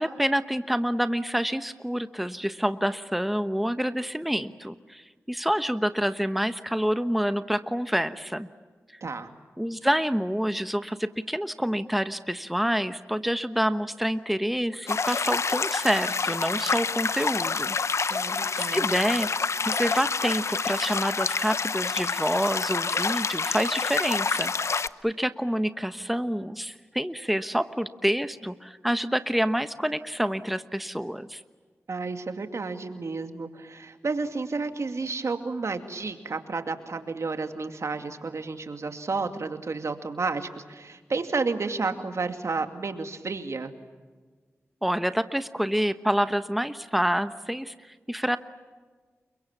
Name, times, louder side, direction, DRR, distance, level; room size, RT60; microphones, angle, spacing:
voice 1, 0.0-8.5 9.6-17.8 18.0-18.2 18.6-19.3 19.6-31.4 44.8-48.4, equal, ahead, 11 dB, 1.2 m, -27 dB
sound 1, 14.9-24.9, left 4 dB, 65° left, 0.8 m, -28 dB
voice 2, 18.1-18.9 31.9-43.7, right 4 dB, 65° right, 7 dB, 2.4 m, -31 dB
29.5 x 24.0 x 7.4 m, 1.4 s
cardioid pair, 45°, 5 cm